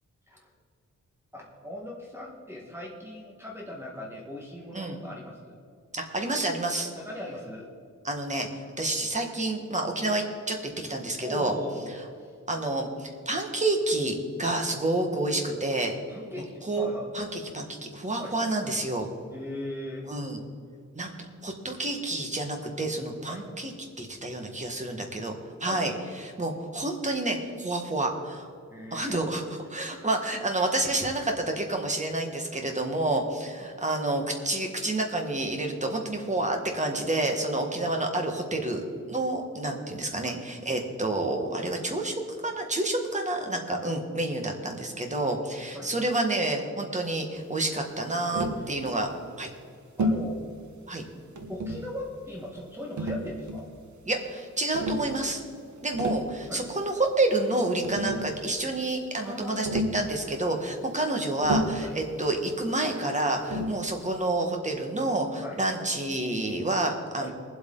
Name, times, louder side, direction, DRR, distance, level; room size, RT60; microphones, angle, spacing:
voice 1, 1.3-5.6 7.0-7.7 11.2-12.3 16.1-17.1 18.2-18.4 19.3-20.1 23.3-23.5 25.6-26.0 28.7-29.2 37.7-37.9 40.1-40.4 43.7-43.9 45.7-46.0 48.3-48.7 50.0-50.4 51.5-53.7 56.5-56.7 59.1-59.6 61.8-61.9 63.5-63.8 65.4-65.6 67.2-67.3, left 1 dB, 10° right, -2 dB, 1.5 m, -39 dB
voice 2, 5.9-6.9 8.0-8.5 8.8-11.5 12.5-16.0 16.6-16.9 17.1-19.1 20.1-20.4 20.9-23.7 24.0-25.3 25.6-25.9 26.2-28.5 28.9-49.1 49.4-49.5 50.9-51.0 54.1-55.4 55.8-67.3, right 2 dB, 25° right, 3 dB, 1.6 m, -29 dB
Tap, 48.3-48.7 50.0-50.3 51.4-51.9 53.0-53.7 54.7-55.1 55.8-56.3 57.5-57.6 57.8-58.4 59.7-60.1 61.4-61.9 63.5-63.8, equal, 65° right, 1.2 m, -30 dB
21.0 x 8.0 x 3.9 m, 2.3 s
wide cardioid pair, 150°, 31 cm